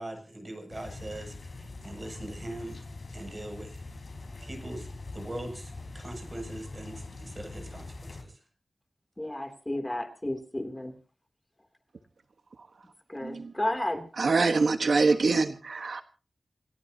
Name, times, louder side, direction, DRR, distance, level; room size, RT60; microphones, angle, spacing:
voice 1, 0.0-2.9 3.1-3.8 4.4-8.4, right 1 dB, 30° right, 4 dB, 7.4 m, -41 dB
sound 1, 0.7-8.2, left 3 dB, 60° left, 4.7 m, -43 dB
voice 2, 9.2-10.9 13.1-14.1, left 1 dB, 15° left, 6 dB, 3.0 m, -32 dB
voice 3, 14.2-16.0, right 3 dB, 75° right, 7 dB, 1.3 m, -24 dB
28.0 x 15.5 x 2.9 m, 0.37 s
wide cardioid pair, 95°, 0 cm